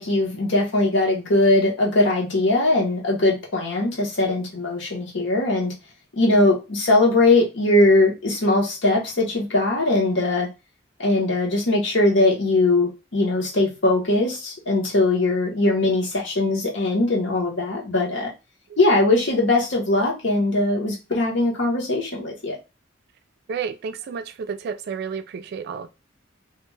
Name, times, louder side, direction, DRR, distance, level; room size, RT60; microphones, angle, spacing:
voice 1, 0.0-5.7 6.2-10.5 11.0-18.3 18.8-22.5, left 2 dB, 70° left, 1.0 m, -20 dB
voice 2, 23.5-25.9, right 6 dB, 55° right, 0.3 m, -31 dB
2.5 x 2.2 x 3.1 m
head